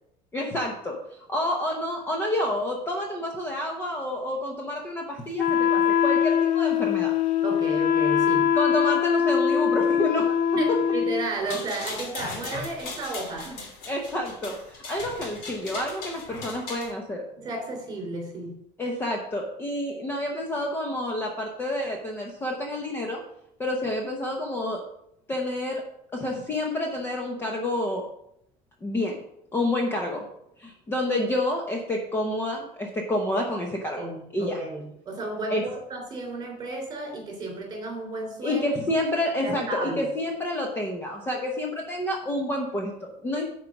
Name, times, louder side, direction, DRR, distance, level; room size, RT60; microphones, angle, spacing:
voice 1, 0.3-1.0 1.3-7.1 8.5-10.4 13.9-17.2 18.8-23.2 23.6-24.8 25.3-25.8 26.1-28.1 28.8-29.2 29.5-30.2 30.6-34.1 34.3-34.6 35.5-35.6 38.4-43.4, left 1 dB, 15° left, 0 dB, 0.8 m, -29 dB
Wind instrument woodwind instrument, 5.4-11.3, left 8 dB, 60° left, 0.8 m, -22 dB
voice 2, 7.4-8.5 10.5-13.6 17.4-18.6 34.0-38.7 39.4-40.1, right 2 dB, 25° right, 0 dB, 3.3 m, -33 dB
sound 1, 11.3-16.9, left 3 dB, 85° left, 2.9 m, -38 dB
9.4 x 4.6 x 6.0 m, 0.76 s
cardioid pair, 180°, 16 cm